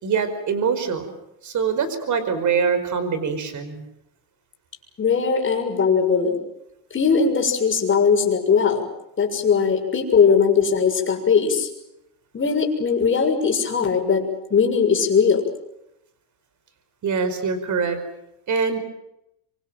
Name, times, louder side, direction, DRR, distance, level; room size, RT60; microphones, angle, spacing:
voice 1, 0.0-1.1 1.4-3.8 17.0-18.0 18.5-18.8, right 6 dB, 35° right, 11 dB, 5.4 m, -23 dB
voice 2, 5.0-6.4 6.9-8.9 9.2-11.7 12.3-15.4, left 6 dB, 25° left, 3 dB, 6.7 m, -19 dB
26.5 x 25.0 x 7.7 m, 0.83 s
supercardioid pair, 120°, 50 cm